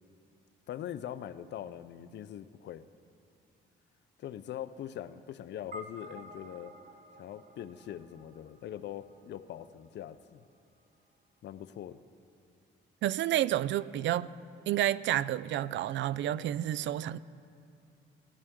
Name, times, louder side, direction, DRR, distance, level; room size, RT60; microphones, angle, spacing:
voice 1, 0.7-2.8 4.2-6.7 7.2-10.4 11.4-12.0, left 10 dB, 60° left, 12 dB, 0.5 m, -42 dB
sound 1, 5.7-10.3, equal, 40° right, 1.1 m, -51 dB
voice 2, 13.0-14.3 14.7-17.2, right 12 dB, 70° right, 19 dB, 0.4 m, -30 dB
19.0 x 13.5 x 3.7 m, 2.5 s
cardioid pair, 90°, 20 cm